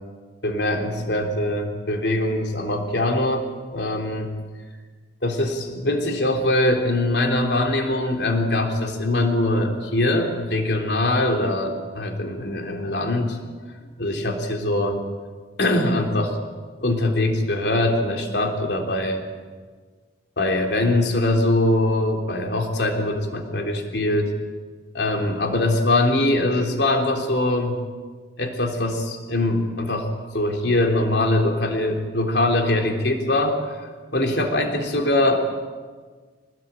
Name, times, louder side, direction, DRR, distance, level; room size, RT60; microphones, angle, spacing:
voice 1, 0.4-3.5 3.7-4.3 5.2-13.4 14.0-15.0 15.6-16.4 16.8-19.2 20.4-24.3 24.9-27.8 28.4-30.1 30.3-33.6 34.1-35.4, left 1 dB, 65° left, 3 dB, 3.5 m, -22 dB
26.0 x 20.0 x 9.0 m, 1.5 s
head